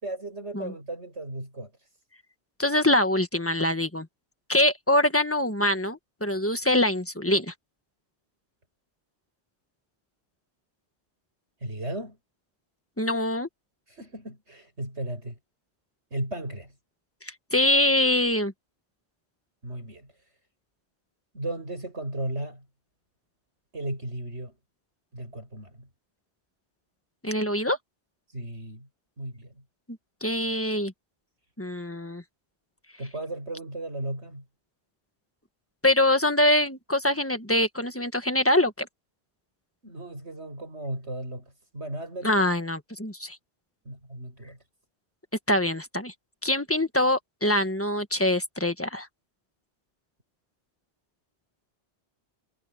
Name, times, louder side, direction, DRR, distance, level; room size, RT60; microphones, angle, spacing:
voice 1, 0.0-1.7 11.6-12.2 13.9-15.4 16.1-16.7 19.6-20.1 21.3-22.6 23.7-24.5 25.1-25.9 28.3-28.9 29.2-29.5 33.0-34.4 39.8-42.4 43.8-44.6, right 1 dB, 85° right, 8.1 m, -35 dB
voice 2, 2.6-4.1 4.5-7.5 13.0-13.5 17.2-18.5 27.2-27.8 30.2-30.9 31.6-32.2 35.8-38.9 42.2-43.4 45.5-46.1 46.4-49.1, left 1 dB, 10° left, 1.4 m, -24 dB
omnidirectional pair, 1.1 m